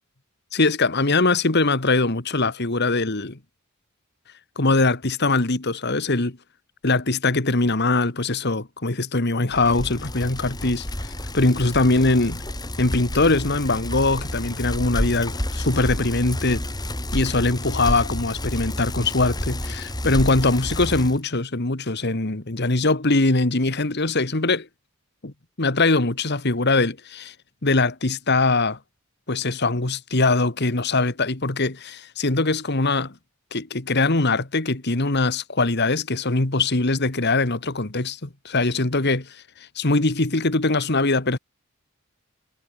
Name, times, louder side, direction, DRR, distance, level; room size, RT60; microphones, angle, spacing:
voice 1, 0.5-3.4 4.5-6.4 6.8-10.8 11.3-12.4 12.8-16.6 17.1-24.7 25.2-27.3 27.6-28.8 29.3-33.1 33.5-39.4 39.7-41.4, left 3 dB, 50° left, 1.8 m, -22 dB
Bicycle, 9.5-21.2, left 1 dB, 20° left, 4.2 m, -30 dB
head